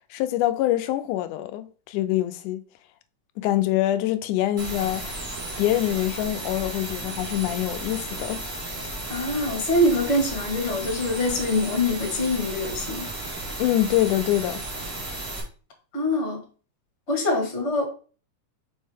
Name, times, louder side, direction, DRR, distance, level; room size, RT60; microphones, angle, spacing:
voice 1, 0.1-2.6 3.4-5.2 5.6-8.5 13.6-14.6, left 14 dB, 85° left, 2.1 m, -25 dB
sound 1, 4.6-15.4, right 2 dB, 40° right, 2.0 m, -34 dB
voice 2, 9.1-13.1 15.9-16.4 17.1-17.8, left 1 dB, 30° left, 1.5 m, -24 dB
5.3 x 5.1 x 3.6 m
omnidirectional pair, 3.6 m